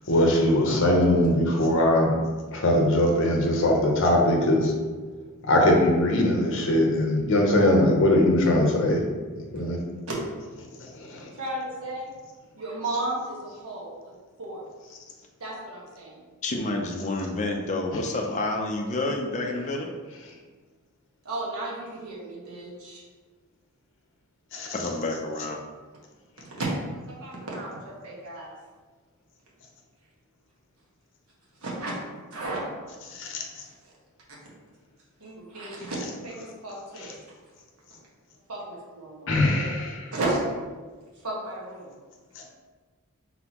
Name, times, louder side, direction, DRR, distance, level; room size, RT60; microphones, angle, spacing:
voice 1, 0.1-2.1 2.5-4.7 5.4-9.0 9.3-9.8 11.0-11.3 24.5-24.8 33.1-33.4 39.3-39.9 42.4-42.5, left 1 dB, 60° left, 1 dB, 0.8 m, -21 dB
voice 2, 11.3-12.1 12.6-14.1 14.4-14.6 15.4-16.2 21.2-23.0 26.4-26.7 27.1-28.5 31.6-32.0 32.3-32.6 33.6-33.9 34.3-34.4 35.2-36.0 36.2-37.2 38.5-39.7 40.1-40.4 41.2-41.9, right 2 dB, 75° right, -4 dB, 1.2 m, -34 dB
voice 3, 16.4-19.9 24.7-25.6, left 2 dB, 30° left, 1 dB, 0.5 m, -29 dB
4.0 x 3.8 x 2.9 m, 1.4 s
head